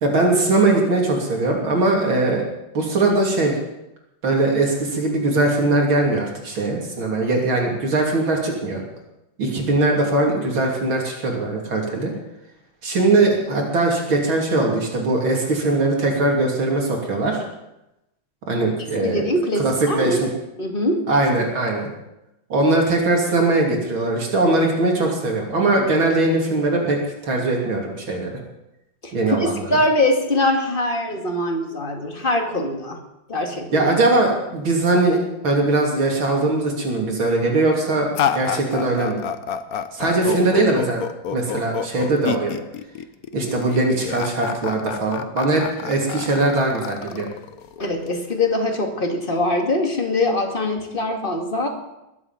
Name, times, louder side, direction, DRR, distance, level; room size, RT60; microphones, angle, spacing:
voice 1, 0.0-2.4 2.7-3.6 4.2-8.8 9.4-12.1 12.8-17.4 18.5-19.2 19.6-20.3 21.1-21.9 22.5-28.3 29.1-29.8 33.7-39.2 39.9-41.0 41.3-42.6 43.3-47.3, right 2 dB, 70° right, 0 dB, 3.7 m, -20 dB
voice 2, 19.0-20.2 20.6-21.1 29.0-33.0 33.3-33.9 47.8-51.7, left 1 dB, 25° left, 2 dB, 2.3 m, -22 dB
sound 1, 38.1-48.1, left 8 dB, 55° left, 1.1 m, -28 dB
21.5 x 8.4 x 7.4 m, 0.91 s
omnidirectional pair, 2.3 m